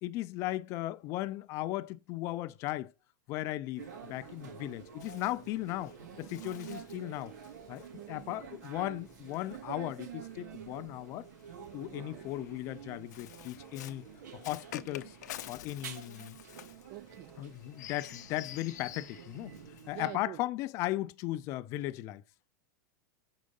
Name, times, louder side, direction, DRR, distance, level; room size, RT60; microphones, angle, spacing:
voice 1, 0.0-2.9 3.3-7.3 7.7-11.3 11.7-14.1 14.3-15.2 15.5-16.4 17.4-19.5 19.9-22.2, left 16 dB, 30° left, 0.4 m, -37 dB
Bird, 3.8-10.3 11.2-20.0, left 12 dB, 80° left, 0.6 m, -50 dB
sound 1, 3.8-20.2, right 7 dB, 85° right, 2.5 m, -49 dB
voice 2, 7.9-8.5 11.8-12.2 16.9-17.4 19.9-20.4, right 16 dB, 35° right, 0.4 m, -47 dB
6.3 x 4.8 x 5.3 m
supercardioid pair, 160°, 9 cm